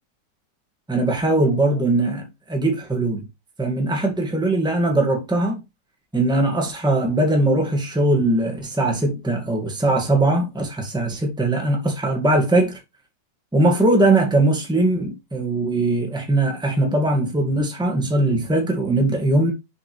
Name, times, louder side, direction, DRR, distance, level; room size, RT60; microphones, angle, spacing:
voice 1, 0.9-3.3 3.6-5.6 6.1-12.8 13.5-19.5, right 2 dB, 5° right, 1.8 m, -20 dB
7.4 x 5.2 x 3.3 m
omnidirectional pair, 1.8 m